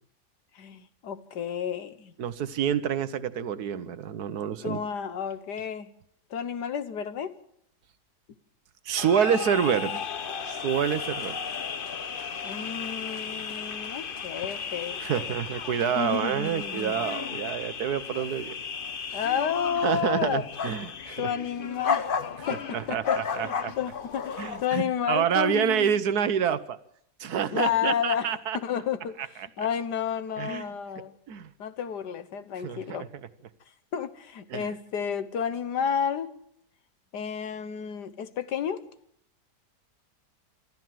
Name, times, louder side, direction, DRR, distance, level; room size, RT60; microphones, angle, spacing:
voice 1, 0.6-2.1 4.6-5.9 6.3-7.4 12.4-15.3 16.0-17.0 19.1-20.4 21.2-22.2 22.5-26.0 27.5-31.1 31.6-33.1 33.9-36.3 37.1-38.9, left 8 dB, 85° left, 12 dB, 1.8 m, -31 dB
voice 2, 2.2-4.8 8.8-10.0 10.5-11.3 15.0-18.5 19.1-19.2 19.8-21.3 22.4-22.5 22.7-23.7 24.4-26.8 27.2-28.6 29.6-29.7 30.4-30.7 31.0-31.5 32.6-33.0 34.5-34.7, right 8 dB, 70° right, 13 dB, 1.5 m, -28 dB
sound 1, 9.0-24.7, left 6 dB, 40° left, 0.9 m, -34 dB
25.5 x 13.5 x 7.6 m, 0.73 s
omnidirectional pair, 1.7 m